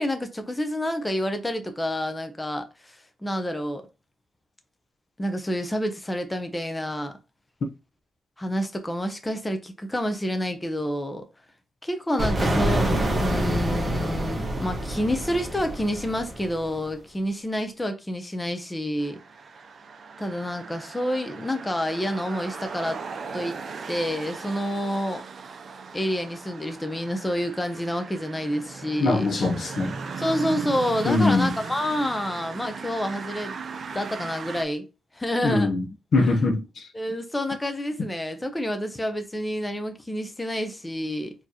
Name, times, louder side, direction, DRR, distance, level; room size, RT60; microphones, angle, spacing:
voice 1, 0.0-3.8 5.2-7.2 8.4-11.2 11.8-19.2 20.2-23.0 23.3-23.6 23.9-25.2 25.9-29.3 30.2-33.6 33.9-34.8 35.1-35.7 36.9-41.3, equal, 15° left, 0.7 m, -28 dB
sound 1, 12.2-16.8, right 1 dB, 25° right, 1.4 m, -26 dB
sound 2, 19.0-34.6, right 5 dB, 55° right, 0.5 m, -38 dB
voice 2, 29.0-29.9 31.0-31.6 35.4-35.9 36.1-36.9, left 3 dB, 60° left, 0.8 m, -22 dB
4.3 x 3.0 x 2.9 m
cardioid pair, 85°, 0 cm